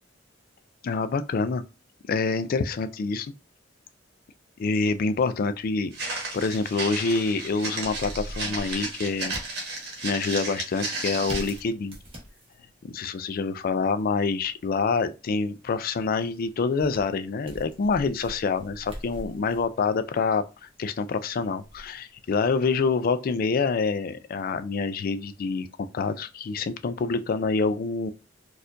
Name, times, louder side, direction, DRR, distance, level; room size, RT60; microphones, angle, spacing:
voice 1, 0.8-1.6 2.1-3.3 4.6-9.3 10.0-12.0 12.8-28.1, left 4 dB, 50° left, 0.3 m, -26 dB
sound 1, 4.7-22.8, equal, 30° right, 1.0 m, -45 dB
Walk footsteps, 5.9-11.6, right 2 dB, 60° right, 1.3 m, -34 dB
4.2 x 2.4 x 2.6 m
head